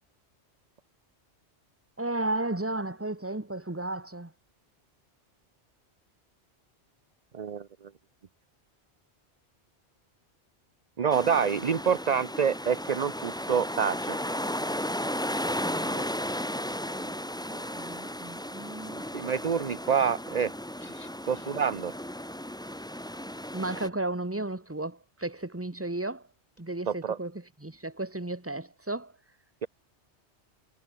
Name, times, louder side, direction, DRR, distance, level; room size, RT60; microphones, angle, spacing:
voice 1, 2.0-4.3 15.6-16.1 16.9-17.2 17.5-19.0 23.5-26.2 26.6-29.1, right 2 dB, 10° right, 1.6 m, -34 dB
voice 2, 7.3-7.7 11.0-14.2 19.1-20.5 20.8-21.9 26.9-27.2, right 7 dB, 40° right, 0.8 m, -27 dB
sound 1, 11.1-23.9, equal, 5° left, 1.1 m, -35 dB
omnidirectional pair, 1.2 m